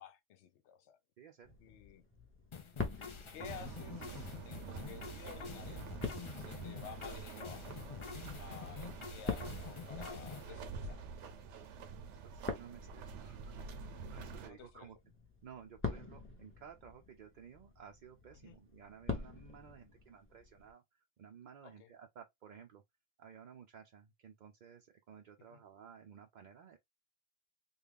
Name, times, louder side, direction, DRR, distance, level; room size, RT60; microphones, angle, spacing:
voice 1, 0.0-1.0 1.6-2.0 3.3-5.9 6.4-7.8 8.4-11.4 14.4-14.9 18.3-18.6 21.6-21.9 25.5-25.6, left 9 dB, 75° left, 0.9 m, -53 dB
voice 2, 1.2-1.6 6.4-6.7 8.5-8.7 12.2-13.6 14.1-15.0 15.4-22.8 23.2-26.8, right 7 dB, 55° right, 0.5 m, -55 dB
sound 1, 1.4-20.7, left 3 dB, 15° left, 0.7 m, -47 dB
sound 2, 2.5-10.5, left 6 dB, 45° left, 0.4 m, -48 dB
sound 3, 3.4-14.5, right 5 dB, 80° right, 1.0 m, -47 dB
3.4 x 2.4 x 3.4 m
omnidirectional pair, 1.2 m